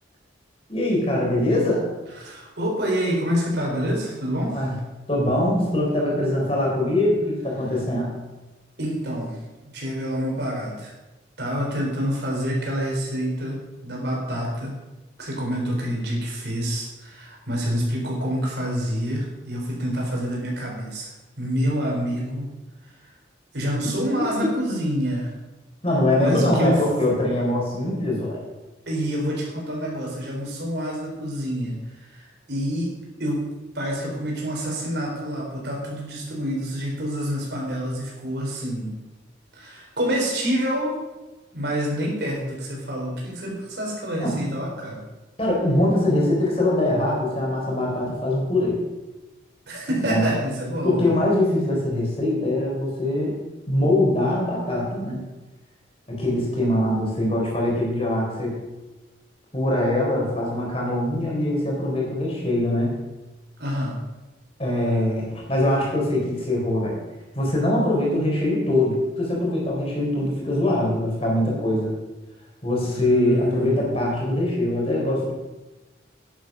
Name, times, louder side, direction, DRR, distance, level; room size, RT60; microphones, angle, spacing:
voice 1, 0.7-1.9 4.5-4.7 5.1-8.1 25.8-28.4 44.2-44.4 45.4-48.8 49.9-50.3 50.8-53.3 53.7-55.2 56.1-58.6 59.5-62.9 64.6-67.0 67.3-71.9 72.6-75.3, left 1 dB, 30° left, -2 dB, 4.0 m, -22 dB
voice 2, 2.2-4.6 8.8-10.9 11.4-14.8 15.2-22.6 22.8-22.9 23.5-25.3 26.2-26.8 28.9-32.9 33.2-38.9 39.5-41.0 41.5-45.0 49.7-51.1 63.6-64.0 72.8-74.0, equal, 65° right, -2 dB, 4.1 m, -27 dB
10.5 x 9.0 x 6.2 m, 1.1 s
head